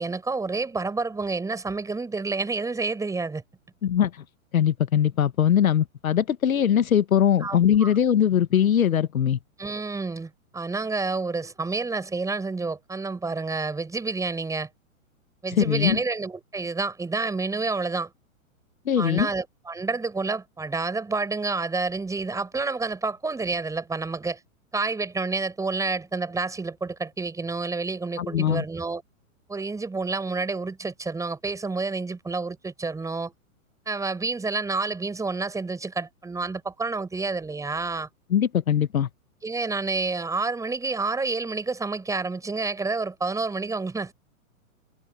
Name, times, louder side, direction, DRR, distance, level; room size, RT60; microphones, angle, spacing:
voice 1, 0.0-3.4 7.4-7.9 9.6-14.7 15.4-18.1 19.0-24.4 24.7-29.0 29.5-33.3 33.9-38.1 39.4-44.1, right 3 dB, 10° right, 7.3 m, -29 dB
voice 2, 4.5-9.4 15.6-16.0 18.8-19.3 28.2-28.6 38.3-39.1, left 9 dB, 80° left, 1.5 m, -21 dB
hypercardioid pair, 130°, 42 cm